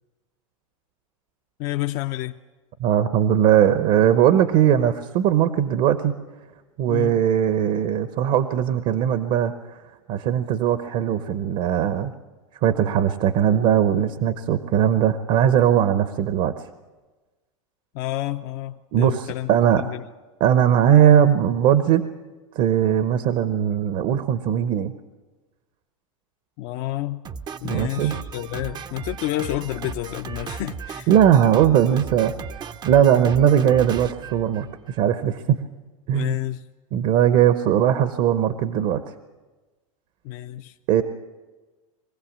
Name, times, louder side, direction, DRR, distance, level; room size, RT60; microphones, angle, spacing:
voice 1, 1.6-2.4 6.9-7.2 17.9-20.0 26.6-27.2 27.6-31.1 36.1-36.7 40.2-40.8, left 16 dB, 50° left, 6 dB, 0.6 m, -30 dB
voice 2, 2.8-6.1 6.8-9.8 10.1-12.1 12.6-16.5 18.9-19.8 20.4-22.1 22.5-24.9 27.6-28.1 31.1-32.3 32.9-35.6 36.1-36.4 36.9-39.1 40.9-41.0, right 10 dB, 50° right, 11 dB, 0.9 m, -19 dB
Drum kit, 27.2-35.0, right 6 dB, 25° right, 0.6 m, -36 dB
23.0 x 15.5 x 7.4 m, 1.3 s
hypercardioid pair, 110°, 18 cm